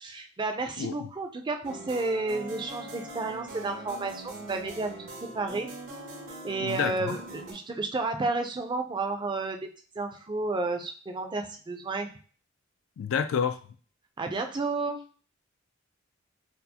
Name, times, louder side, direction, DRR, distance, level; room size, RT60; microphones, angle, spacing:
voice 1, 0.0-4.9 5.2-5.7 6.4-9.7 10.0-12.1 14.2-15.0, right 3 dB, 25° right, 0.4 m, -31 dB
sound 1, 1.6-7.5, right 2 dB, 85° right, 1.5 m, -42 dB
voice 2, 6.6-7.2 13.0-13.6, left 7 dB, 80° left, 0.3 m, -28 dB
4.3 x 2.0 x 2.8 m
head